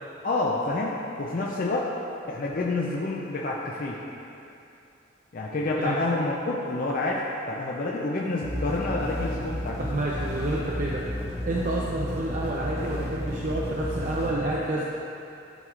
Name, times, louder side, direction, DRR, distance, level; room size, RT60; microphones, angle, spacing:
voice 1, 0.2-1.9 2.3-4.0 5.3-9.8, left 2 dB, 45° left, -3 dB, 0.5 m, -28 dB
sound 1, 8.4-14.3, left 1 dB, 15° left, 0.8 m, -32 dB
voice 2, 9.8-11.1 11.4-14.8, right 2 dB, 40° right, -4 dB, 0.5 m, -29 dB
11.5 x 4.6 x 2.4 m, 2.7 s
head